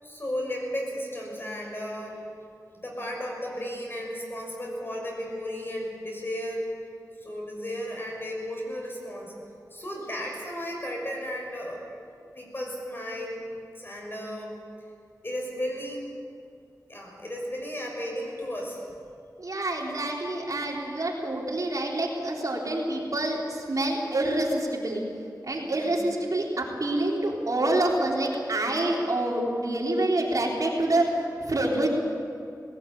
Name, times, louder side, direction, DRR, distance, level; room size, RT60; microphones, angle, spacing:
voice 1, 0.0-2.2 2.7-6.6 7.2-9.3 9.7-11.8 12.3-13.4 13.7-14.6 15.2-16.0 16.9-18.8 25.7-26.0, equal, 35° left, -1 dB, 6.1 m, -34 dB
voice 2, 19.4-25.0 25.4-31.1 31.4-31.9, right 1 dB, 60° right, -2 dB, 3.6 m, -27 dB
19.0 x 17.5 x 8.4 m, 2.5 s
wide cardioid pair, 85°, 7 cm